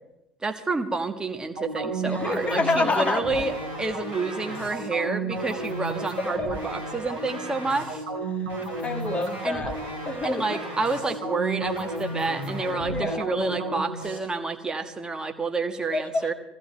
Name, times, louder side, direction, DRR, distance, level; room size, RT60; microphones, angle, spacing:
voice 1, 0.4-3.5 3.8-8.0 9.4-9.6 10.2-16.3, right 3 dB, 15° right, 5 dB, 1.5 m, -29 dB
sound 1, 1.6-14.2, right 2 dB, 65° right, 4.2 m, -33 dB
voice 2, 2.1-3.4 6.2-6.5 8.3-9.7 10.1-10.6 12.9-13.3 15.9-16.3, left 3 dB, 25° left, 4 dB, 1.9 m, -28 dB
21.0 x 14.5 x 3.3 m, 0.94 s
figure-of-eight pair, 70°, 5 cm